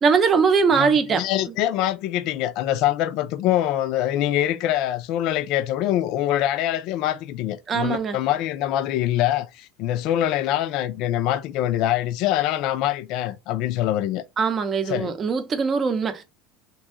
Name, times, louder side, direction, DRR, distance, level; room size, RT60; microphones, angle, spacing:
voice 1, 0.0-1.5 7.7-8.2 14.4-16.2, right 5 dB, 30° right, 0.7 m, -21 dB
voice 2, 0.8-14.2 14.9-15.1, left 12 dB, 60° left, 0.4 m, -24 dB
3.0 x 2.6 x 3.7 m
supercardioid pair, 125°, 0 cm